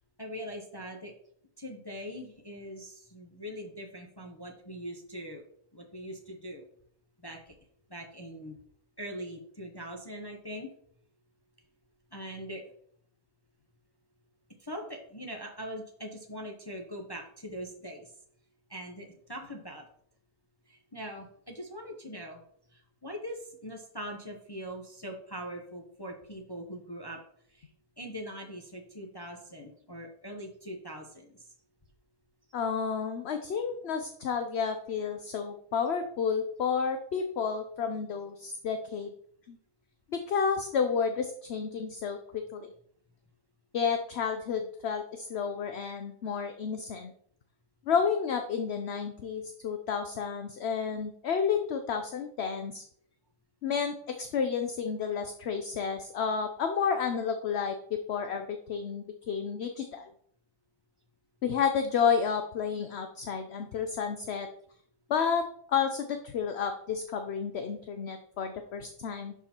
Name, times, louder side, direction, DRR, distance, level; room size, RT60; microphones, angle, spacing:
voice 1, 0.2-1.1 1.6-5.4 5.7-6.6 7.2-7.5 7.9-8.6 9.0-10.7 12.1-12.6 14.6-18.1 18.7-19.8 20.7-22.4 22.7-27.2 27.5-27.7 28.0-31.5, equal, 20° left, 2 dB, 1.0 m, -42 dB
voice 2, 32.5-39.1 39.5-39.6 40.1-42.2 42.5-42.7 43.7-47.1 47.9-52.8 53.6-57.7 58.1-60.1 61.4-64.5 65.1-69.3, left 6 dB, 55° left, 6 dB, 0.8 m, -31 dB
11.0 x 4.8 x 4.4 m, 0.64 s
omnidirectional pair, 1.6 m